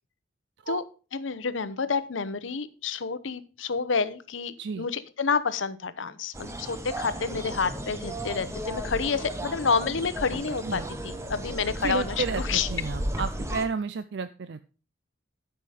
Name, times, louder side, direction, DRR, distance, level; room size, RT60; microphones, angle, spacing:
voice 1, 1.1-12.7, left 5 dB, 80° left, 14 dB, 0.8 m, -29 dB
sound 1, 6.3-13.7, right 1 dB, 15° right, 1.0 m, -34 dB
voice 2, 11.8-14.6, right 5 dB, 60° right, 12 dB, 0.5 m, -32 dB
12.5 x 5.7 x 4.9 m, 0.36 s
head